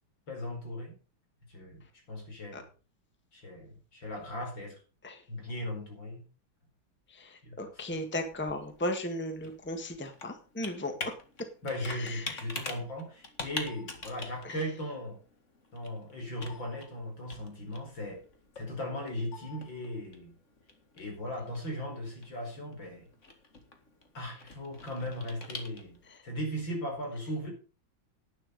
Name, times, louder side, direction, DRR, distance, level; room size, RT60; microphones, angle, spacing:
voice 1, 0.3-1.0 1.5-2.7 3.3-4.8 5.3-6.2 7.4-8.0 11.6-15.2 15.7-18.2 18.6-20.3 21.0-23.1 24.1-26.0 26.2-27.5, equal, 75° left, 1 dB, 5.4 m, -38 dB
voice 2, 7.1-11.1 11.9-12.4 14.4-14.5 26.1-26.2, left 1 dB, 5° left, 6 dB, 1.5 m, -36 dB
Computer keyboard, 7.9-26.2, left 3 dB, 40° left, 2.2 m, -46 dB
11.5 x 9.4 x 5.2 m, 0.35 s
omnidirectional pair, 2.1 m